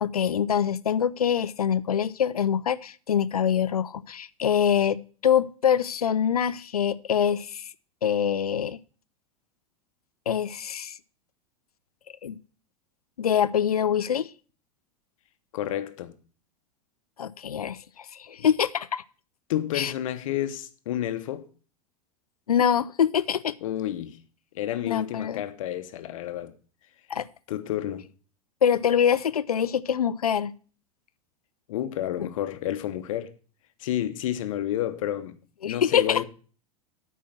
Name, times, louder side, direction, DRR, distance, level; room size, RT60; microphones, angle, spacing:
voice 1, 0.0-7.7 8.0-8.8 10.3-11.0 12.2-12.4 13.2-14.3 17.2-19.0 19.7-19.9 22.5-23.6 24.8-25.4 27.1-27.3 28.6-30.5 35.6-36.2, left 8 dB, 80° left, 0.4 m, -24 dB
voice 2, 15.5-16.1 19.5-21.5 23.6-24.2 24.5-26.5 27.5-28.1 31.7-33.3 33.8-35.4 35.6-36.2, left 12 dB, 60° left, 0.9 m, -30 dB
8.6 x 4.6 x 7.4 m
figure-of-eight pair, 90°, 19 cm